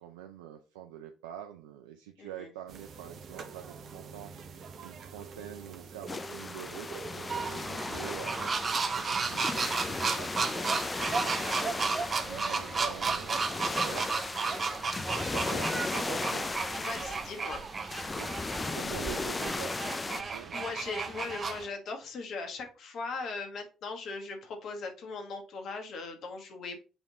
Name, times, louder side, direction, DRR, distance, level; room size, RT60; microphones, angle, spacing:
voice 1, 0.0-4.3 4.8-8.5 8.8-11.5 12.2-14.1 15.3-16.5 18.1-20.6, right 10 dB, 85° right, 5 dB, 0.5 m, -46 dB
voice 2, 2.2-2.5 14.5-14.7 16.8-17.6 20.2-26.8, left 4 dB, 60° left, 4 dB, 1.7 m, -39 dB
sound 1, 2.7-7.7, right 5 dB, 60° right, 1.1 m, -46 dB
sound 2, 6.1-20.2, left 3 dB, 30° left, 0.5 m, -36 dB
sound 3, 7.3-21.7, right 4 dB, 45° right, 1.0 m, -33 dB
7.0 x 3.6 x 4.2 m, 0.34 s
hypercardioid pair, 50°, 0 cm